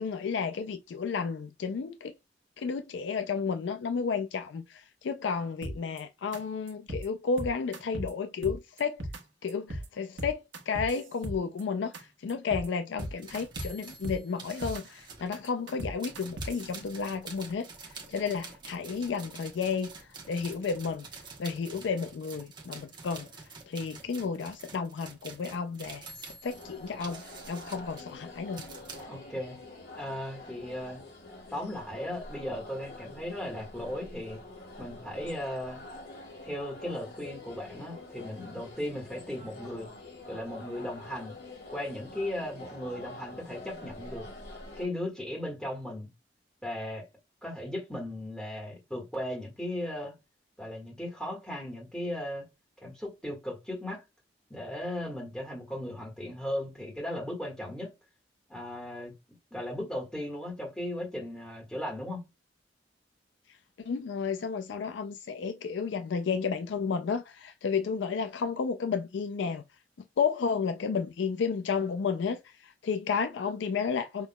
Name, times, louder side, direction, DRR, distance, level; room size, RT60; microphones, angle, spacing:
voice 1, 0.0-2.1 2.6-9.0 9.4-21.1 21.4-23.3 23.7-26.1 26.4-28.6 28.9-29.0 63.5-69.6 70.2-74.3, left 5 dB, 80° left, 0.4 m, -32 dB
sound 1, 5.6-6.0 6.3-6.4 6.7-7.1 7.4-8.1 8.4-9.2 9.5-9.9 10.2-11.6 11.9-12.0 12.3-12.7 13.0-13.7 14.0-14.8 15.1-16.6, equal, 85° right, 1.1 m, -37 dB
sound 2, 13.0-15.4 16.0-29.0, right 4 dB, 25° right, 1.0 m, -47 dB
sound 3, 26.4-44.9, left 2 dB, 65° left, 2.1 m, -46 dB
voice 2, 29.1-29.6 29.9-31.0 31.5-34.4 34.8-35.8 36.4-39.9 40.3-41.4 41.7-44.3 44.8-46.1 46.6-47.1 47.4-50.1 50.6-52.5 52.8-54.0 54.5-57.9 58.5-59.1 59.5-62.2, left 1 dB, 5° left, 1.6 m, -36 dB
5.8 x 2.9 x 2.2 m
head